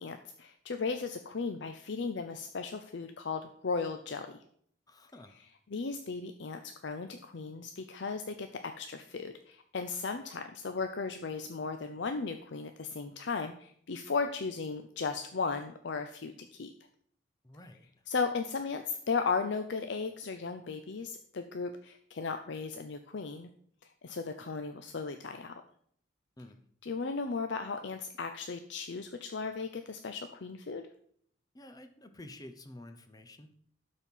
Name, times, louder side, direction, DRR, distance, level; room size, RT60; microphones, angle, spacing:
voice 1, 0.0-4.4 5.7-16.7 18.1-23.5 24.0-25.6 26.8-30.8, left 4 dB, 65° left, 7 dB, 0.5 m, -36 dB
voice 2, 4.9-5.4 17.4-17.9 26.4-26.6 31.5-33.5, left 1 dB, 20° left, 8 dB, 0.7 m, -50 dB
12.0 x 4.2 x 5.5 m, 0.63 s
head